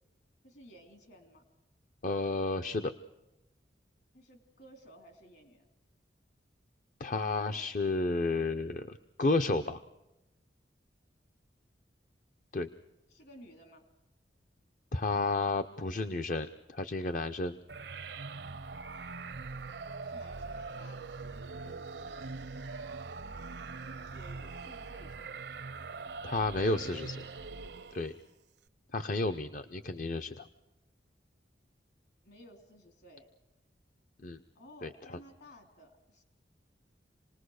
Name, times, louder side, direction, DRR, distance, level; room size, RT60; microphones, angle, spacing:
voice 1, 0.4-1.4 4.1-5.7 13.1-13.8 20.0-21.0 21.6-22.3 24.1-25.5 32.2-33.3 34.5-36.2, equal, 65° left, 5 dB, 3.5 m, -55 dB
voice 2, 2.0-2.9 7.0-9.8 12.5-12.7 14.9-17.6 26.2-27.2 27.9-28.2 28.9-30.4 34.2-34.4 34.8-34.9, left 2 dB, 45° left, 9 dB, 0.7 m, -32 dB
sound 1, 17.7-28.3, right 4 dB, 70° right, 0.7 m, -42 dB
28.0 x 19.5 x 6.5 m, 0.96 s
head